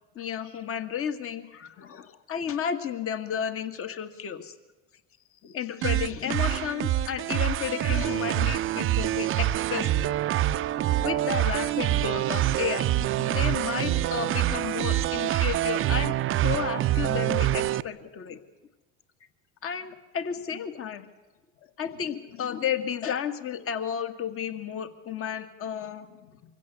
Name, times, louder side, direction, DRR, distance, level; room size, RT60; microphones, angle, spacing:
voice 1, 0.2-4.5 5.4-10.1 10.7-16.2 16.4-18.4 19.6-21.1 21.8-26.3, left 8 dB, 40° left, 10 dB, 2.0 m, -32 dB
sound 1, 5.8-17.8, right 13 dB, 40° right, 0.6 m, -26 dB
24.5 x 16.0 x 8.2 m, 1.2 s
supercardioid pair, 100°, 34 cm